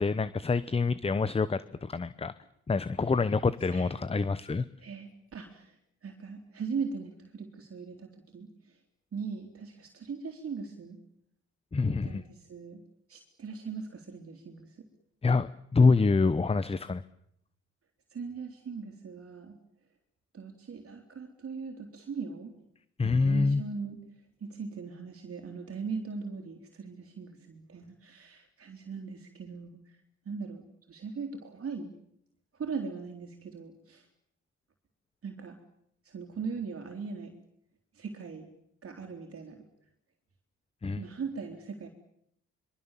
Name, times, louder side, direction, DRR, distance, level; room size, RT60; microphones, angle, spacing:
voice 1, 0.0-2.3 2.7-4.7 11.7-12.2 15.2-17.0 23.0-23.6 40.8-41.0, left 4 dB, 20° left, 16 dB, 0.9 m, -26 dB
voice 2, 3.6-3.9 4.8-5.8 6.0-8.8 9.1-11.0 11.8-12.8 13.1-14.9 18.1-19.6 20.3-22.6 23.0-24.0 24.4-30.0 30.2-31.9 32.5-34.1 35.2-35.6 36.0-37.4 37.9-38.5 38.8-39.7 41.0-41.9, right 5 dB, 50° right, 3 dB, 3.7 m, -40 dB
24.5 x 24.0 x 7.5 m, 0.73 s
cardioid pair, 90°, 30 cm